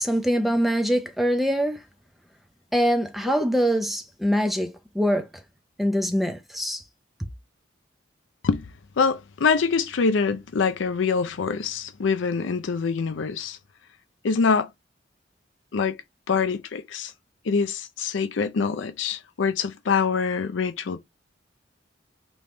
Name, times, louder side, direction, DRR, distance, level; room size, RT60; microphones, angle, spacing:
voice 1, 0.0-1.8 2.7-5.3 5.8-6.8, equal, ahead, 0.5 m, -23 dB
voice 2, 9.0-13.6 14.2-14.7 15.7-15.9 16.3-17.1 17.5-21.0, left 5 dB, 80° left, 0.5 m, -24 dB
3.4 x 3.0 x 2.6 m
head